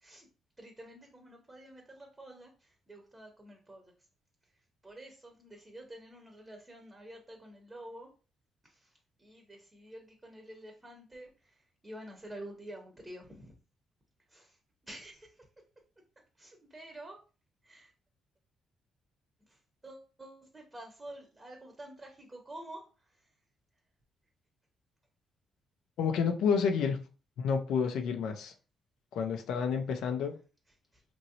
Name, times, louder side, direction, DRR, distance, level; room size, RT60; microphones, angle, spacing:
voice 1, 0.6-3.9 4.8-8.1 8.6-13.5 14.3-14.6 14.8-15.4 16.4-17.2 17.6-17.9 19.5-23.3 30.9-31.0, right 1 dB, 15° right, 0.7 m, -49 dB
voice 2, 26.0-27.0 27.4-28.5 29.1-30.4, left 6 dB, 80° left, 0.4 m, -29 dB
2.9 x 2.6 x 2.7 m
cardioid pair, 90°, 0 cm